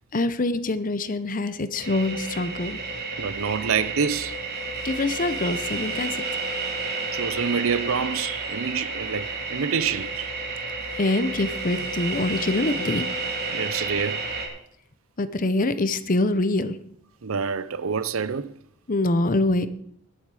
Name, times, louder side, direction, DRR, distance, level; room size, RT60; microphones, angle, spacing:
voice 1, 0.1-2.8 4.8-6.2 11.0-13.1 15.2-16.8 18.9-19.7, left 2 dB, 40° left, 0.8 m, -24 dB
sound 1, 1.8-14.5, right 3 dB, 50° right, 3.5 m, -31 dB
voice 2, 3.2-4.4 7.1-10.3 13.5-14.2 17.2-18.5, right 6 dB, 75° right, 0.6 m, -27 dB
20.5 x 7.3 x 4.9 m
head